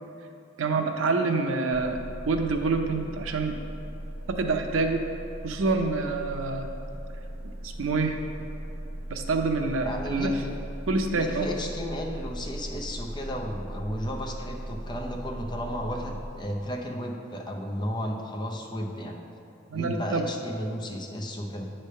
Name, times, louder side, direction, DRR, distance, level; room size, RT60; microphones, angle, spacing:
voice 1, 0.6-3.6 4.3-5.0 5.4-6.7 7.6-8.2 9.1-10.4 10.9-11.5 19.7-20.2, right 3 dB, 90° right, 5 dB, 0.6 m, -27 dB
sound 1, 1.7-16.2, right 1 dB, 25° right, 0.6 m, -38 dB
voice 2, 9.8-10.5 11.2-19.2 19.7-21.7, equal, 20° left, 0 dB, 0.6 m, -34 dB
8.8 x 3.3 x 5.5 m, 2.6 s
head